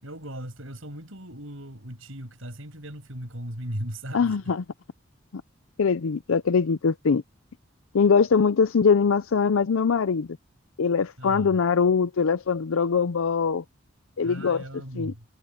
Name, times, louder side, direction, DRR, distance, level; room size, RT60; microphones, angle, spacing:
voice 1, 0.0-4.4 11.2-11.6 14.2-15.3, right 1 dB, 75° right, 7.3 m, -37 dB
voice 2, 4.1-4.6 5.3-5.4 5.8-7.2 7.9-10.3 10.8-13.6 14.2-14.6 14.9-15.1, left 5 dB, 80° left, 0.5 m, -22 dB
head